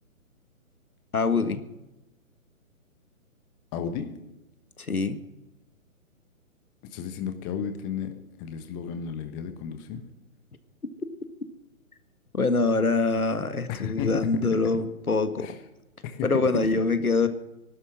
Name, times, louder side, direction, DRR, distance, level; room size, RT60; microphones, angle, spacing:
voice 1, 1.1-1.6 4.8-5.2 12.3-15.6 16.2-17.3, left 3 dB, 90° left, 10 dB, 1.7 m, -24 dB
voice 2, 3.7-4.1 6.9-8.1 8.4-10.0 13.7-14.1 15.4-15.5 16.0-16.3, left 8 dB, 20° left, 8 dB, 1.2 m, -33 dB
18.0 x 12.0 x 6.2 m, 0.94 s
figure-of-eight pair, 135°, 42 cm